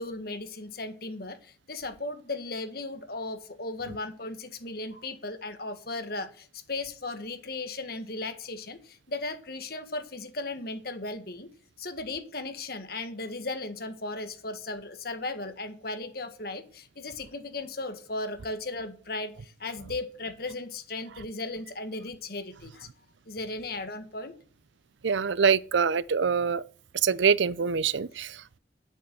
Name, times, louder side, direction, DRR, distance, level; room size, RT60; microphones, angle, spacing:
voice 1, 0.0-11.5 11.8-22.9 23.3-24.3, left 2 dB, 55° left, 1.6 m, -36 dB
voice 2, 25.0-26.6 27.0-28.6, right 6 dB, 80° right, 0.5 m, -25 dB
10.5 x 8.0 x 6.8 m
head